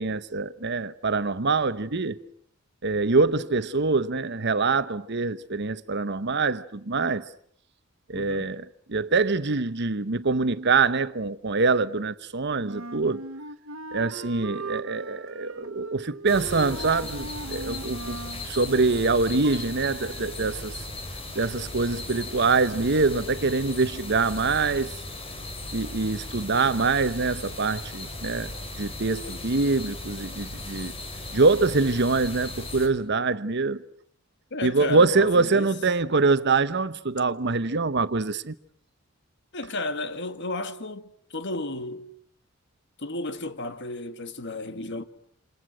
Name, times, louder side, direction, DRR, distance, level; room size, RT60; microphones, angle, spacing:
voice 1, 0.0-2.2 2.8-7.3 8.1-13.2 13.9-18.2 18.4-20.8 21.3-24.9 25.7-28.5 28.8-30.9 31.3-33.8 34.6-38.5, right 3 dB, 55° right, 1.0 m, -24 dB
voice 2, 8.1-8.5 34.5-35.7 39.5-42.1 43.0-45.0, left 2 dB, 55° left, 1.8 m, -33 dB
Wind instrument woodwind instrument, 12.6-18.5, right 3 dB, 75° right, 1.6 m, -38 dB
sound 1, 16.3-32.9, left 2 dB, 30° left, 4.5 m, -37 dB
29.0 x 28.0 x 6.4 m
head